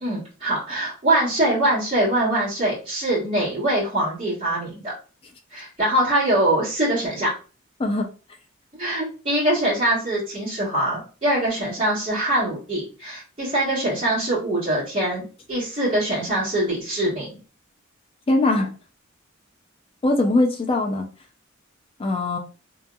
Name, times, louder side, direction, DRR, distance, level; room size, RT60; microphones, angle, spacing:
voice 1, 0.0-4.9 5.5-7.3 8.7-17.3, right 1 dB, 25° right, -11 dB, 1.3 m, -23 dB
voice 2, 7.8-8.1 18.3-18.7 20.0-21.1 22.0-22.4, left 2 dB, 25° left, 3 dB, 0.3 m, -21 dB
2.8 x 2.7 x 2.3 m, 0.35 s
head